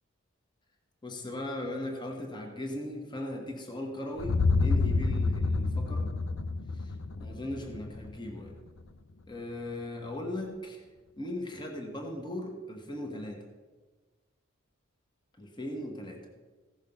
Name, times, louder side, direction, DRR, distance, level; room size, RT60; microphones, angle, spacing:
voice 1, 1.0-6.1 6.8-8.6 9.3-10.8 11.2-13.4 15.4-16.2, left 1 dB, 20° left, 2 dB, 1.3 m, -38 dB
sound 1, 4.2-8.2, left 3 dB, 65° left, 0.6 m, -28 dB
15.5 x 6.4 x 5.4 m, 1.3 s
head